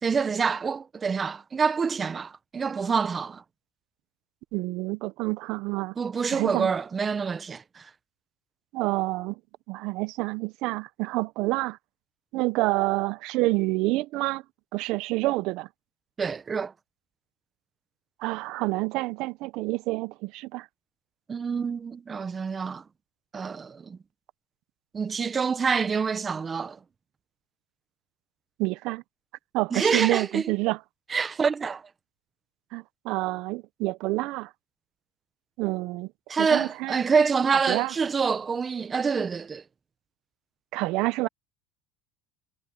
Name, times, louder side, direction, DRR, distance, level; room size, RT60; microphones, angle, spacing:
voice 1, 0.0-3.4 6.0-7.9 16.2-16.7 21.3-22.8 23.3-24.0 24.9-26.8 29.7-30.4 31.1-31.8 36.3-39.6, right 5 dB, 25° right, 1.2 m, -26 dB
voice 2, 4.5-6.0 6.3-6.7 8.7-9.4 9.7-11.8 12.3-14.4 14.7-15.7 18.2-20.7 28.6-29.0 29.5-30.8 32.7-34.5 35.6-36.1 36.4-37.0 37.7-37.9 40.7-41.3, right 21 dB, 65° right, 0.8 m, -28 dB
supercardioid pair, 105°, 0 cm